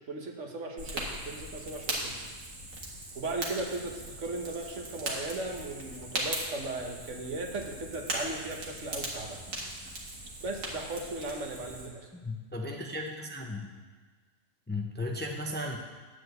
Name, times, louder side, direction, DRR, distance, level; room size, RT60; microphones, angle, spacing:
voice 1, 0.1-2.1 3.1-9.4 10.4-12.1, right 2 dB, 70° right, 2 dB, 1.4 m, -37 dB
Fire, 0.8-11.9, right 1 dB, 90° right, 2.1 m, -39 dB
voice 2, 12.2-13.7 14.7-15.8, left 1 dB, 10° left, 1 dB, 0.6 m, -35 dB
9.9 x 4.7 x 7.9 m, 1.4 s
omnidirectional pair, 1.3 m